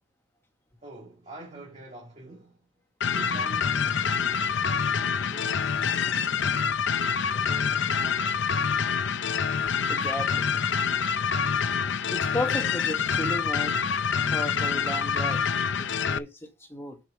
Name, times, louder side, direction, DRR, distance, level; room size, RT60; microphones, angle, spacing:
voice 1, 0.8-2.7 3.1-6.8 7.3-8.5, right 2 dB, 35° right, 2.1 m, -46 dB
sound 1, 3.0-16.2, left 6 dB, 65° left, 0.5 m, -26 dB
voice 2, 9.9-10.5 12.1-15.4 15.8-17.0, left 1 dB, 10° left, 1.3 m, -35 dB
7.2 x 5.1 x 5.9 m
head